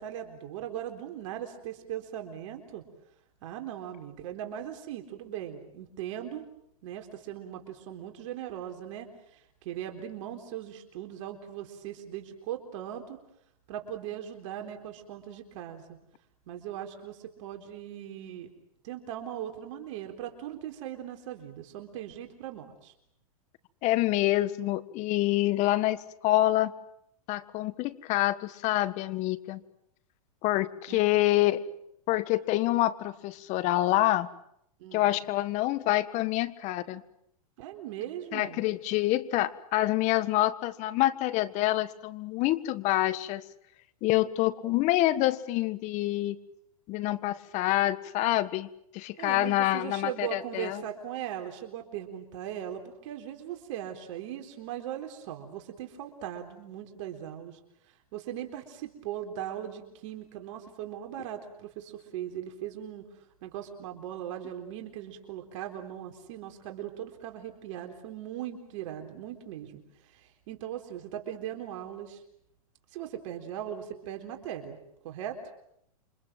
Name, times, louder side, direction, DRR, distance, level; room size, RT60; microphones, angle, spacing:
voice 1, 0.0-2.8 3.4-6.5 6.8-13.2 13.7-15.8 16.5-18.5 18.8-22.9 30.9-31.0 34.8-35.1 37.6-38.6 49.2-57.6 57.9-63.0 63.4-72.2 72.9-74.8 75.0-75.5, right 10 dB, 55° right, 4 dB, 3.9 m, -39 dB
voice 2, 23.8-26.7 27.3-29.6 30.4-31.6 32.1-34.3 34.9-37.0 38.3-43.4 44.0-46.4 46.9-50.8, left 16 dB, 40° left, 15 dB, 1.6 m, -27 dB
28.5 x 25.5 x 7.6 m, 0.74 s
hypercardioid pair, 135°, 19 cm